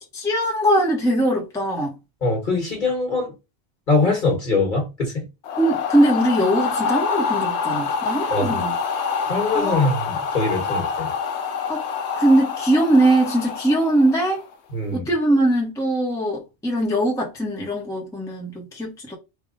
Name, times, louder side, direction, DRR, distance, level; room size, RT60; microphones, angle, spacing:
voice 1, 0.1-1.9 5.6-8.7 9.5-9.8 11.7-11.8 12.2-14.4 14.9-19.2, right 1 dB, 5° left, 0.9 m, -21 dB
voice 2, 2.2-3.3 3.9-5.3 8.3-8.6 9.3-11.1 14.7-15.1, left 3 dB, 45° left, 1.4 m, -23 dB
sound 1, 5.4-14.5, left 5 dB, 75° left, 0.9 m, -26 dB
3.4 x 2.3 x 3.7 m
omnidirectional pair, 1.2 m